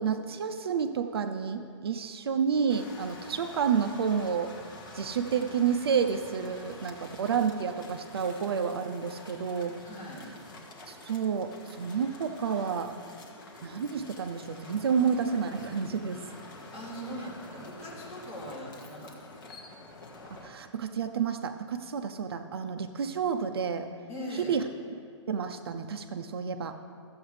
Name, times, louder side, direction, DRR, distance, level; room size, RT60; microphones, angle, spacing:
voice 1, 0.0-4.5 4.9-9.8 10.9-12.9 13.6-16.3 20.3-23.9 24.5-24.6 25.3-26.7, right 6 dB, 55° right, 7 dB, 0.5 m, -30 dB
sound 1, 2.7-20.5, left 2 dB, 45° left, 1.5 m, -48 dB
voice 2, 9.8-10.3 16.7-19.3 24.1-24.6, equal, 30° left, -6 dB, 2.6 m, -40 dB
14.0 x 7.9 x 3.2 m, 2.3 s
hypercardioid pair, 170°, 15 cm